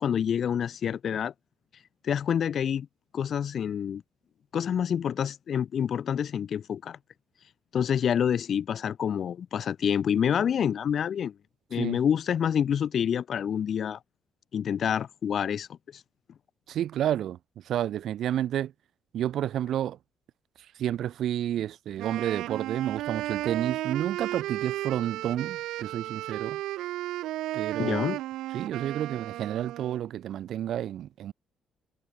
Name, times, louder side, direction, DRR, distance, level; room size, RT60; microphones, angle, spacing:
voice 1, 0.0-1.3 2.0-2.9 3.1-4.0 4.5-7.0 7.7-11.3 11.7-14.0 14.5-15.7 27.8-28.2, left 8 dB, 60° left, 1.2 m, -27 dB
voice 2, 16.7-17.4 17.6-18.7 19.1-20.0 20.8-26.6 27.5-28.1 28.5-31.3, right 11 dB, 75° right, 6.3 m, -30 dB
Wind instrument woodwind instrument, 22.0-30.1, right 15 dB, 90° right, 1.8 m, -34 dB
cardioid pair, 90°, 0 cm